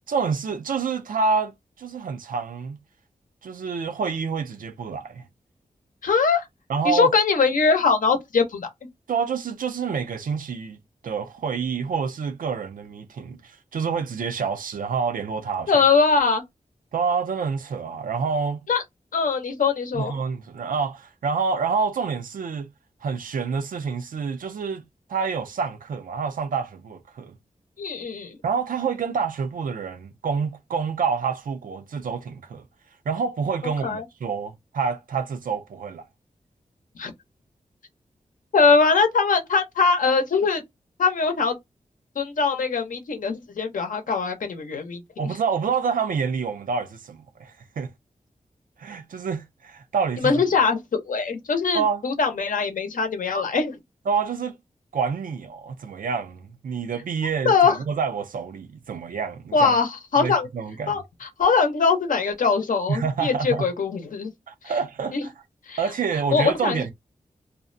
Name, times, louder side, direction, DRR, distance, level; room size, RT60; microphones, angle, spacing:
voice 1, 0.1-2.8 3.4-5.2 6.7-7.1 9.1-10.8 11.0-15.9 16.9-18.7 19.9-22.7 23.0-24.8 25.1-27.3 28.4-32.6 33.1-36.0 45.2-47.9 48.8-50.4 51.7-52.0 54.1-54.6 54.9-59.7 60.2-61.0 62.9-63.7 64.5-65.3 65.8-66.9, right 5 dB, 85° right, 0.5 m, -27 dB
voice 2, 6.0-6.4 6.8-8.7 15.7-16.4 18.7-18.8 19.1-20.2 27.8-28.4 33.8-34.0 37.0-37.1 38.5-40.6 41.0-41.6 42.2-45.0 50.2-53.8 57.4-57.8 59.5-60.5 60.9-64.3 65.1-65.3 65.7-65.8 66.3-66.9, left 5 dB, 75° left, 0.7 m, -22 dB
2.5 x 2.1 x 2.5 m
wide cardioid pair, 80°, 14 cm